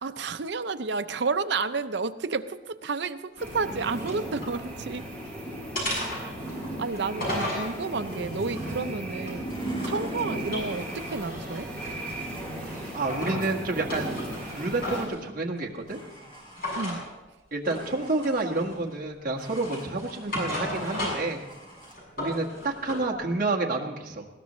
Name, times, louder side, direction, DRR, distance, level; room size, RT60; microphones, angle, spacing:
voice 1, 0.0-5.1 6.0-6.4 6.8-9.5 9.8-11.7 16.8-17.0, right 4 dB, 60° right, 10 dB, 0.6 m, -31 dB
sound 1, 3.4-4.6 5.0-5.3 5.7-7.7 8.3-10.1 10.4-12.2 12.6-13.4 13.8-15.2 16.5-17.0 17.6-17.9 18.2-18.9 19.4-21.4 21.7-23.0, left 1 dB, 45° left, 7.0 m, -35 dB
sound 2, 3.4-15.1, right 1 dB, 5° left, 3.6 m, -36 dB
Domestic sounds home sounds, 7.6-9.0 9.4-11.5 12.3-13.6 14.3-15.4 15.9-17.1 17.7-18.8 19.4-20.4 20.7-21.9, equal, 30° left, 3.0 m, -49 dB
voice 2, 12.9-14.2 14.5-16.0 17.5-21.4 22.2-24.3, right 2 dB, 45° right, 0 dB, 1.6 m, -29 dB
20.0 x 17.5 x 3.1 m, 1.1 s
head